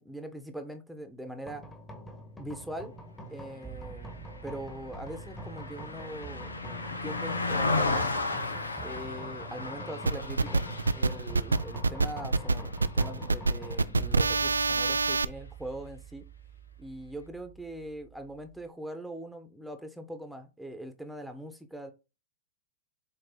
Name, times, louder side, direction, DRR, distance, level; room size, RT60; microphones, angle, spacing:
voice 1, 0.0-1.7 2.4-2.9 3.3-4.1 4.4-8.1 8.8-10.6 10.9-16.2 16.8-21.9, right 1 dB, ahead, 6 dB, 1.1 m, -42 dB
sound 1, 1.5-18.7, right 2 dB, 15° left, 1.6 m, -44 dB
Car passing by, 4.1-13.6 14.0-14.2, left 3 dB, 90° left, 0.9 m, -35 dB
sound 2, 10.1-15.2, right 3 dB, 90° right, 0.3 m, -26 dB
7.8 x 3.2 x 3.8 m, 0.29 s
hypercardioid pair, 100°, 0 cm